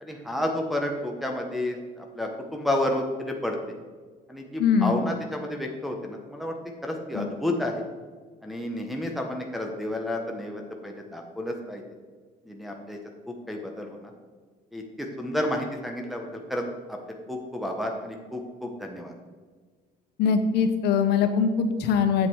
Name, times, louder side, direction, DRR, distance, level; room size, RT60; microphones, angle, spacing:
voice 1, 0.0-3.8 4.3-6.5 6.8-7.8 8.4-11.8 12.5-13.0 13.5-14.1 14.7-16.6 16.9-17.0 17.3-19.1, left 1 dB, ahead, 1 dB, 1.1 m, -31 dB
voice 2, 4.6-5.0 7.1-7.3 20.2-22.3, left 6 dB, 80° left, 8 dB, 1.0 m, -22 dB
7.7 x 7.2 x 4.7 m, 1.5 s
cardioid pair, 110°, 17 cm